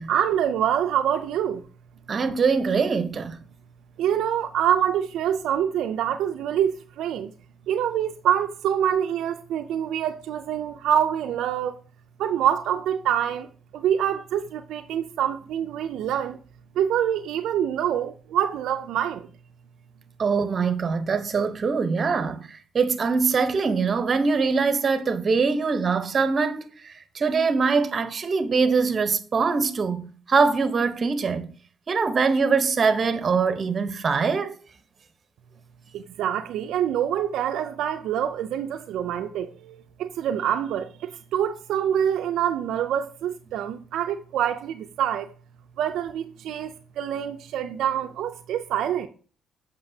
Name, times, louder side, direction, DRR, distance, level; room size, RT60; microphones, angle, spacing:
voice 1, 0.1-1.6 4.0-7.3 7.7-11.8 12.2-16.4 16.8-19.3 35.9-45.3 45.8-49.1, right 9 dB, 80° right, 0.4 m, -26 dB
voice 2, 2.1-3.4 20.2-31.5 31.9-34.6, right 5 dB, 40° right, 0.8 m, -23 dB
7.8 x 5.7 x 2.7 m
cardioid pair, 90°, 0 cm